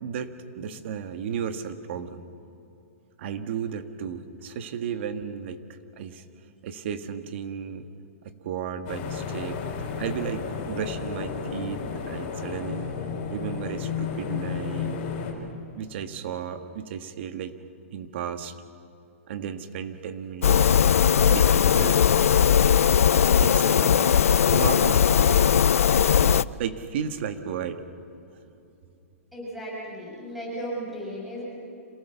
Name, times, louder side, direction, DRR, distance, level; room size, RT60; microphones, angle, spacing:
voice 1, 0.0-2.2 3.2-5.6 6.0-6.2 6.6-7.9 8.2-9.6 10.0-12.9 13.3-15.0 15.7-17.5 17.9-18.5 19.3-20.8 21.3-22.0 23.4-24.1 24.5-25.4 26.2-27.9, right 7 dB, 55° right, 9 dB, 1.7 m, -34 dB
sound 1, 8.9-15.3, left 6 dB, 40° left, 4.5 m, -32 dB
sound 2, 20.4-26.4, left 8 dB, 85° left, 0.5 m, -19 dB
voice 2, 29.3-31.4, equal, ahead, -6 dB, 7.4 m, -35 dB
27.0 x 17.5 x 7.1 m, 2.7 s
hypercardioid pair, 145°, 8 cm